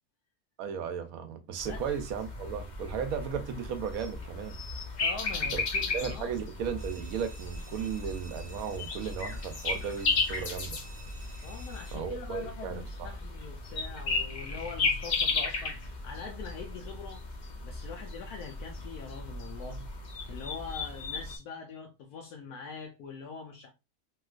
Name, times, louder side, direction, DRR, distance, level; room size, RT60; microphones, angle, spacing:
voice 1, 0.6-4.6 5.4-5.6 5.9-10.8 11.9-13.1, right 7 dB, 75° right, 1.0 m, -35 dB
sound 1, 1.6-21.4, left 3 dB, 50° left, 0.5 m, -35 dB
voice 2, 5.0-6.4 11.4-17.3 17.6-19.9 20.3-23.7, left 5 dB, 80° left, 1.1 m, -43 dB
sound 2, 6.8-12.0, right 1 dB, 20° right, 0.6 m, -52 dB
3.0 x 3.0 x 2.3 m
omnidirectional pair, 1.6 m